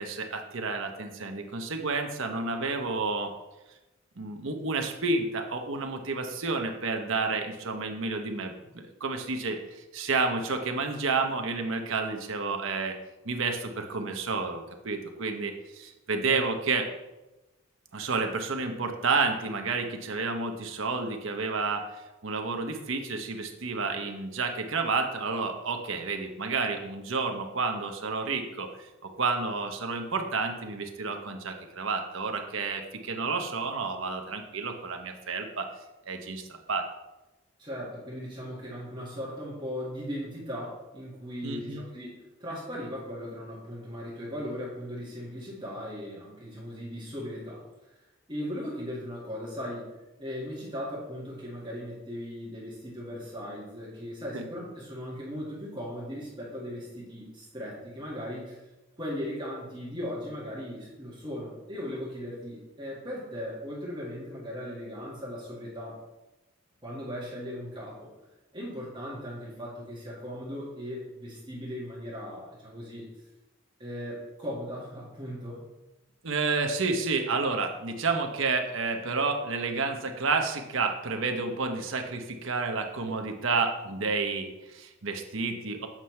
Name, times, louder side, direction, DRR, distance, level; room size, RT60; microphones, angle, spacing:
voice 1, 0.0-3.3 4.2-13.0 13.2-16.9 17.9-35.7 36.1-36.9 41.4-41.8 54.3-54.4 76.2-85.9, right 4 dB, 70° right, 4 dB, 0.8 m, -30 dB
voice 2, 37.6-42.1 42.4-47.6 47.9-48.0 48.3-49.9 50.2-58.6 58.9-66.0 66.8-68.1 68.5-73.1 73.8-75.6, equal, 25° right, -6 dB, 1.7 m, -38 dB
7.5 x 5.6 x 3.2 m, 1.0 s
head